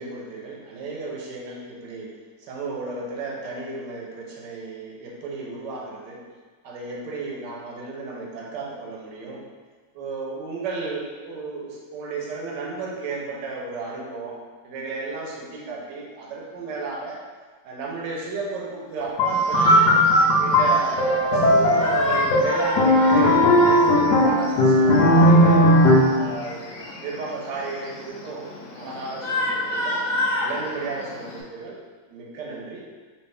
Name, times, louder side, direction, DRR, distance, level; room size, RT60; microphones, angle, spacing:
voice 1, 0.0-2.1 2.4-6.2 6.6-9.4 9.9-14.4 14.6-17.2 17.6-19.9 20.4-25.7 26.1-30.0 30.4-31.8 32.0-32.9, right 3 dB, 70° right, -3 dB, 1.2 m, -33 dB
sound 1, 19.2-26.3, equal, 70° left, 1.0 m, -17 dB
Shout, 19.3-31.4, left 2 dB, 90° left, 0.7 m, -31 dB
3.2 x 2.8 x 3.3 m, 1.4 s
omnidirectional pair, 2.1 m